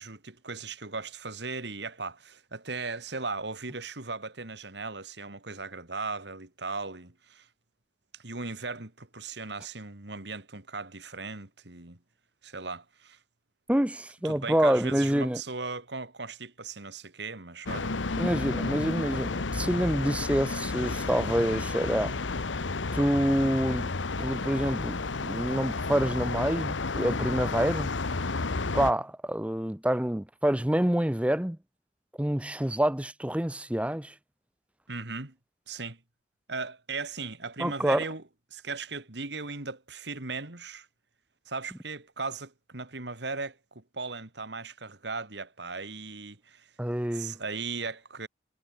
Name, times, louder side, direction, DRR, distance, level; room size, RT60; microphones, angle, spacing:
voice 1, 0.0-7.5 8.1-12.0 12.4-13.2 14.2-18.0 34.9-35.3 35.7-36.0 36.5-38.2 38.5-40.9 41.5-46.7 47.1-48.3, right 4 dB, 65° right, 2.4 m, -37 dB
voice 2, 13.7-15.4 18.2-22.2 22.9-23.9 24.2-27.9 28.7-31.6 32.2-34.1 37.6-38.0 46.8-47.4, right 1 dB, 5° right, 0.6 m, -27 dB
sound 1, 17.7-28.9, left 3 dB, 90° left, 1.1 m, -31 dB
head